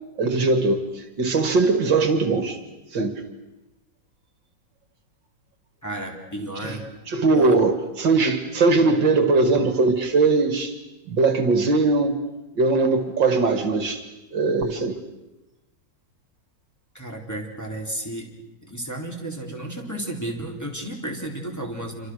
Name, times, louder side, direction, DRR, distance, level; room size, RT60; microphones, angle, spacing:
voice 1, 0.2-2.6 2.9-3.2 6.6-6.8 7.1-10.8 11.1-12.2 12.6-14.0 14.3-15.0, right 3 dB, 70° right, 8 dB, 2.6 m, -20 dB
voice 2, 5.8-6.8 7.2-7.6 16.9-18.3 18.6-22.1, right 1 dB, 10° left, 0 dB, 3.9 m, -32 dB
28.0 x 25.5 x 6.4 m, 0.99 s
omnidirectional pair, 2.1 m